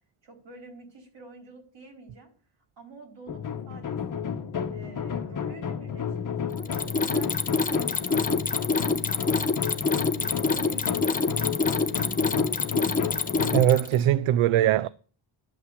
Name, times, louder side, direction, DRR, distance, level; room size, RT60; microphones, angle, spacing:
voice 1, 0.2-2.3 2.8-4.2 4.7-8.7 9.1-9.6 10.2-12.4, right 3 dB, 60° right, 4.4 m, -48 dB
sound 1, 3.3-13.6, left 7 dB, 40° left, 1.1 m, -31 dB
Mechanisms, 6.6-14.0, left 4 dB, 15° left, 0.7 m, -26 dB
voice 2, 13.5-14.9, right 12 dB, 75° right, 0.6 m, -21 dB
12.0 x 5.7 x 8.1 m
cardioid pair, 125°, 49 cm